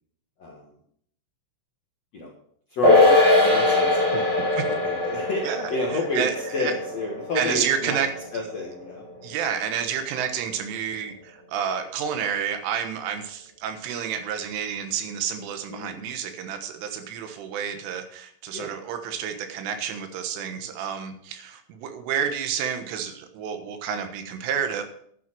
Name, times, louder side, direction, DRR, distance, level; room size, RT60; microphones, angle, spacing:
voice 1, 2.7-5.4 5.7-8.0 8.3-9.0 15.7-15.9 18.5-18.7, left 2 dB, 75° left, -2 dB, 1.5 m, -30 dB
sound 1, 2.8-9.5 9.8-9.9, left 2 dB, 30° right, 4.2 m, -22 dB
voice 2, 5.4-6.3 6.6-6.7 7.4-8.1 9.2-24.8, right 8 dB, 80° right, 7 dB, 3.7 m, -30 dB
12.0 x 9.1 x 4.6 m, 0.65 s
omnidirectional pair, 5.7 m